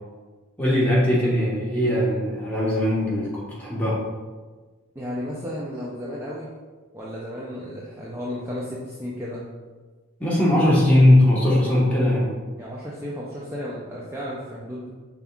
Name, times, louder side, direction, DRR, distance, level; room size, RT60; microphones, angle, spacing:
voice 1, 0.6-4.0 10.2-12.3, left 1 dB, 5° left, -7 dB, 1.1 m, -19 dB
voice 2, 5.0-6.5 6.9-9.5 12.6-14.9, equal, 10° right, -6 dB, 0.4 m, -33 dB
5.3 x 3.4 x 2.3 m, 1.3 s
head